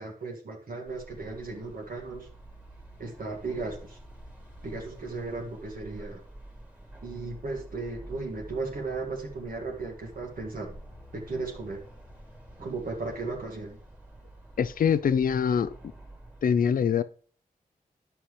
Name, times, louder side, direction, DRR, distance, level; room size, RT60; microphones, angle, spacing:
voice 1, 0.0-2.3 3.0-4.0 4.6-6.2 7.0-10.7 11.1-11.8 12.6-13.8, right 3 dB, 70° right, 1.8 m, -36 dB
sound 1, 0.9-16.4, right 1 dB, 10° right, 2.0 m, -48 dB
voice 2, 14.6-15.7 16.4-17.0, left 7 dB, 65° left, 0.5 m, -24 dB
10.5 x 5.7 x 3.2 m
cardioid pair, 75°, 16 cm